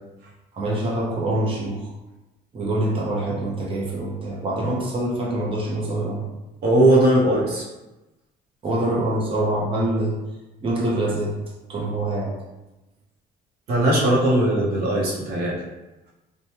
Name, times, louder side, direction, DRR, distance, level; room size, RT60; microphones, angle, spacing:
voice 1, 0.5-1.9 2.5-6.3 8.6-10.1 10.6-11.3 11.7-12.3, right 1 dB, 30° right, -4 dB, 0.8 m, -25 dB
voice 2, 6.6-7.6 13.7-15.6, right 1 dB, 65° right, -5 dB, 0.8 m, -19 dB
3.1 x 2.2 x 2.8 m, 1.0 s
cardioid pair, 110°, 17 cm